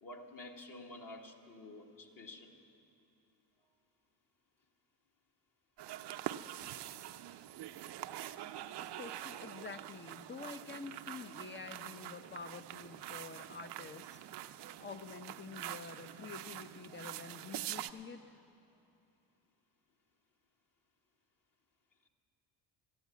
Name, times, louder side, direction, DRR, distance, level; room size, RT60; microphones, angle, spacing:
voice 1, 0.0-2.6, left 2 dB, 40° left, 1 dB, 1.7 m, -50 dB
sound 1, 5.8-17.9, right 13 dB, 60° right, 0.6 m, -45 dB
voice 2, 8.8-14.2 14.8-18.4, left 4 dB, 25° left, 10 dB, 0.7 m, -48 dB
14.0 x 9.5 x 8.4 m, 2.8 s
supercardioid pair, 70°, 49 cm